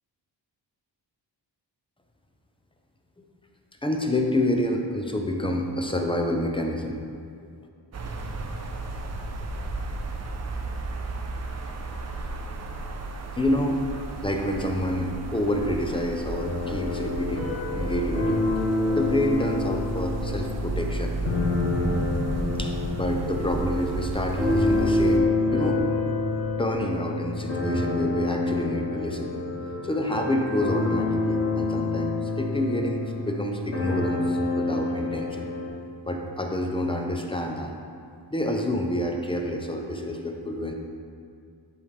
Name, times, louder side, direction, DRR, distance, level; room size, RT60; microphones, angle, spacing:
voice 1, 3.8-7.0 13.4-18.4 18.9-21.1 22.6-25.8 26.6-29.3 29.8-35.4 36.1-37.7 38.3-40.7, left 1 dB, 15° left, 2 dB, 0.5 m, -28 dB
sound 1, 7.9-25.2, right 3 dB, 35° right, 0.5 m, -34 dB
sound 2, 16.3-35.7, left 2 dB, 90° left, 1.9 m, -27 dB
10.5 x 5.1 x 3.2 m, 2.3 s
wide cardioid pair, 170°, 44 cm